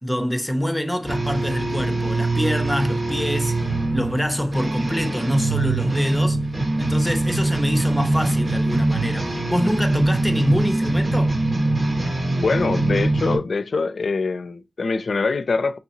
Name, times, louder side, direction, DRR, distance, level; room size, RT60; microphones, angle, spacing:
voice 1, 0.0-3.7 3.9-6.4 6.8-11.4, equal, 5° left, 0.9 m, -25 dB
sound 1, 1.1-13.4, right 2 dB, 75° right, 2.6 m, -23 dB
voice 2, 12.4-15.8, left 4 dB, 70° left, 0.4 m, -23 dB
6.3 x 2.8 x 2.7 m
wide cardioid pair, 80°, 0 cm